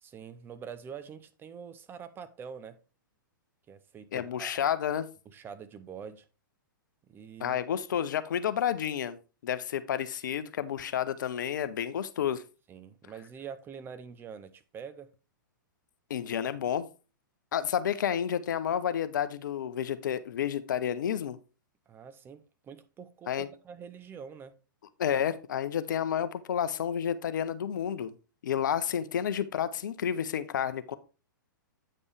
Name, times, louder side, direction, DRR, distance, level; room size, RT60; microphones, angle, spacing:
voice 1, 0.0-2.8 3.7-4.6 5.3-6.3 7.1-7.6 12.7-15.1 21.9-24.5, right 7 dB, 20° right, 0.6 m, -45 dB
voice 2, 4.1-5.1 7.4-9.2 9.4-12.4 16.1-16.9 17.5-21.4 23.3-23.5 25.0-28.1 28.4-31.0, left 9 dB, 65° left, 0.6 m, -30 dB
8.6 x 5.3 x 3.3 m
figure-of-eight pair, 115°, 11 cm